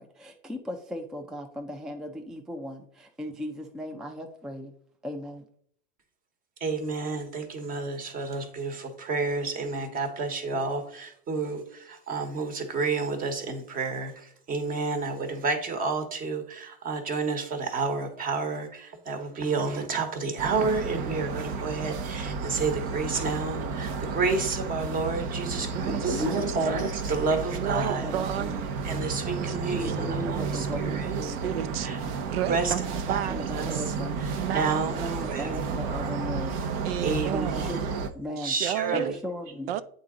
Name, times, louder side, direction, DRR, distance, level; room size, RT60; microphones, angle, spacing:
voice 1, 0.0-4.7 5.0-5.5 25.6-26.0 26.3-26.5 28.0-28.7 29.7-31.5 33.1-34.2 34.9-36.6 37.3-38.5 38.9-39.7, equal, ahead, 0.4 m, -37 dB
voice 2, 6.6-28.0 28.8-30.7 30.9-31.0 31.8-32.0 32.5-32.7 33.1-33.2 33.5-33.6 34.5-35.0 35.3-35.5 35.9-36.1 37.0-37.7 38.4-39.1, right 4 dB, 30° right, 1.2 m, -30 dB
sound 1, 20.4-38.1, right 4 dB, 45° right, 0.8 m, -32 dB
voice 3, 25.7-26.4 27.6-28.6 29.3-30.0 30.3-30.5 30.8-31.9 32.3-33.9 34.4-36.0 36.8-37.7 38.4-39.2 39.7-39.8, right 11 dB, 90° right, 0.5 m, -33 dB
8.3 x 3.9 x 3.7 m
supercardioid pair, 140°, 29 cm